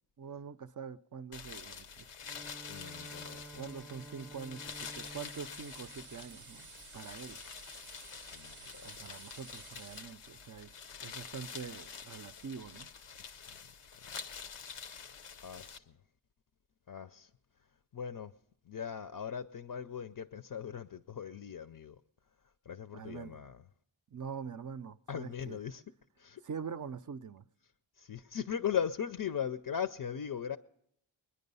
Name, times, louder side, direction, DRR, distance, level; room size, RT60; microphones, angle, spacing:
voice 1, 0.2-2.1 3.6-7.4 8.8-10.7 11.0-12.9 22.9-23.4 24.1-25.6 26.4-27.5, right 6 dB, 40° right, 0.5 m, -44 dB
sound 1, 1.3-15.8, left 6 dB, 90° left, 0.7 m, -47 dB
Bowed string instrument, 2.2-7.0, right 2 dB, ahead, 0.6 m, -52 dB
voice 2, 2.7-3.7 8.2-8.9 13.3-13.6 15.4-15.9 16.9-17.3 17.9-18.3 18.7-22.0 22.7-23.6 25.1-25.8 26.2-26.4 28.0-30.6, left 8 dB, 45° left, 0.5 m, -39 dB
sound 2, 4.7-10.0, right 7 dB, 85° right, 0.6 m, -54 dB
22.0 x 10.0 x 5.4 m
wide cardioid pair, 50°, 50 cm